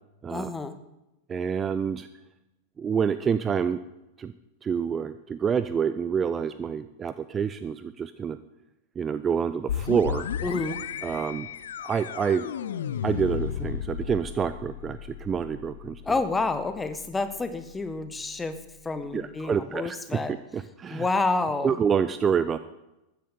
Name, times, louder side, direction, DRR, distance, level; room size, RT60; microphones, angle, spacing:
voice 1, 0.3-0.7 10.4-10.8 16.0-18.6 18.8-20.3 20.9-21.8, left 3 dB, 10° left, 10 dB, 1.3 m, -29 dB
voice 2, 1.3-2.1 2.8-3.8 4.2-4.3 4.6-8.4 9.0-10.3 11.0-11.5 11.8-12.5 13.0-16.0 19.1-20.2 20.5-21.1 21.6-22.6, right 7 dB, 20° right, 13 dB, 0.5 m, -27 dB
sound 1, 9.7-19.2, left 9 dB, 65° left, 0.7 m, -35 dB
14.0 x 9.5 x 6.9 m, 0.93 s
figure-of-eight pair, 90°, 0 cm